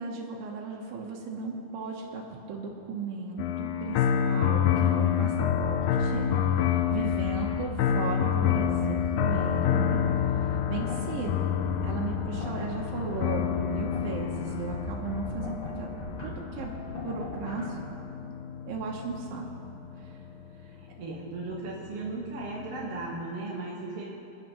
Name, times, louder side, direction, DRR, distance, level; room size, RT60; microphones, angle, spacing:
voice 1, 0.0-2.2 2.5-6.3 6.9-10.1 10.7-15.9 16.2-16.7 17.0-17.8 18.7-19.5, right 4 dB, 75° right, -2 dB, 2.7 m, -36 dB
sound 1, 3.4-20.5 21.3-23.2, left 9 dB, 80° left, 2.2 m, -28 dB
sound 2, 5.6-17.7, left 3 dB, 40° left, 2.2 m, -39 dB
voice 2, 20.8-24.1, right 3 dB, 55° right, -5 dB, 2.0 m, -36 dB
27.0 x 9.5 x 3.1 m, 2.8 s
omnidirectional pair, 4.2 m